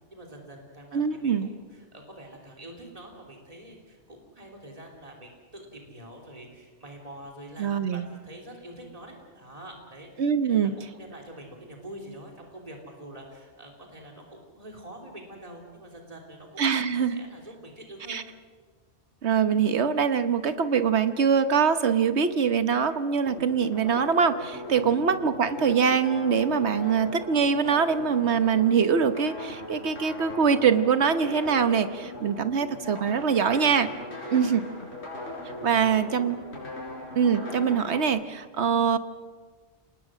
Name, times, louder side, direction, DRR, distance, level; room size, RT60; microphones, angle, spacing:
voice 1, 0.1-16.6 17.1-18.2 24.7-24.9 35.6-36.3, right 1 dB, 35° right, 0 dB, 3.4 m, -45 dB
voice 2, 0.9-1.5 7.6-8.0 10.2-10.7 16.6-17.2 18.1-18.2 19.2-33.9 34.3-34.6 35.6-36.4 37.1-39.0, right 6 dB, 75° right, 10 dB, 1.4 m, -23 dB
sound 1, 23.3-38.0, left 1 dB, 75° left, 5.3 m, -39 dB
30.0 x 19.5 x 6.3 m, 1.5 s
omnidirectional pair, 1.1 m